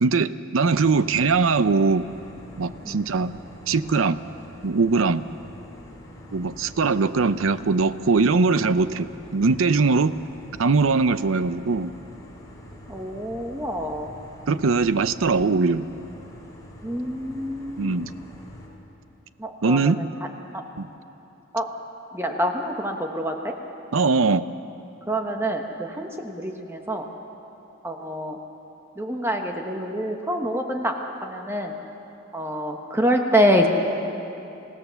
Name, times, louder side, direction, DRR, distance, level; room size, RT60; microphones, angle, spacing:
voice 1, 0.0-2.0 2.6-3.3 3.7-4.2 4.6-5.2 6.3-10.1 10.6-11.9 14.5-15.9 17.8-18.1 19.6-20.0 20.8-20.9 23.9-24.5, right 4 dB, 80° right, 14 dB, 0.6 m, -21 dB
sound 1, 0.6-18.7, equal, 15° left, 3.4 m, -45 dB
voice 2, 12.9-14.1 16.8-18.0 19.4-20.1 20.5-20.6 21.5-21.7 22.1-23.5 25.1-27.0 27.8-28.4 29.0-31.0 31.2-31.8 32.3-33.7, equal, 10° right, 3 dB, 1.1 m, -26 dB
26.5 x 16.5 x 7.0 m, 2.9 s
head